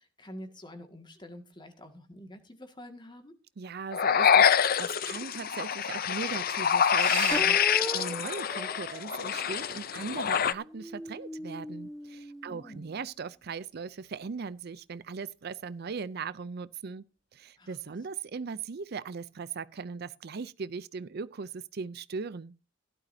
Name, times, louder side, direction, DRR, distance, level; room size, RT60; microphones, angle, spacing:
voice 1, 0.0-3.4 12.4-12.9 17.6-17.8, left 1 dB, 25° left, 1.9 m, -47 dB
voice 2, 3.6-17.0 17.3-22.5, right 5 dB, 55° right, 0.5 m, -39 dB
sound 1, 3.9-10.5, left 8 dB, 50° left, 0.6 m, -26 dB
sound 2, 6.9-12.0 13.8-14.5 17.9-18.0 18.4-18.5, right 7 dB, 90° right, 2.7 m, -44 dB
sound 3, 7.3-10.0 10.6-13.1, equal, 5° left, 1.0 m, -40 dB
16.0 x 12.0 x 2.7 m
head